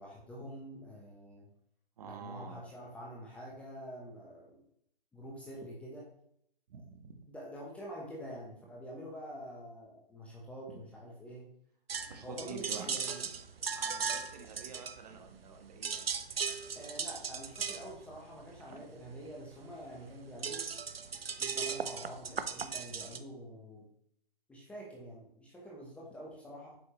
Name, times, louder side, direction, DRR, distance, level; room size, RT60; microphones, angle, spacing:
voice 1, 0.0-1.5 2.0-4.6 5.1-6.1 7.3-11.5 12.2-13.3 16.7-20.7 21.4-23.9 24.5-26.8, equal, 5° left, -3 dB, 0.8 m, -47 dB
voice 2, 2.0-2.7 6.7-7.3 10.7-10.8 12.1-12.9 13.8-16.1 18.7-18.9, right 5 dB, 40° right, 4 dB, 1.2 m, -48 dB
sound 1, 11.9-15.5 15.7-23.2, right 6 dB, 80° right, 0.8 m, -37 dB
8.6 x 6.2 x 3.0 m, 0.70 s
figure-of-eight pair, 140°, 29 cm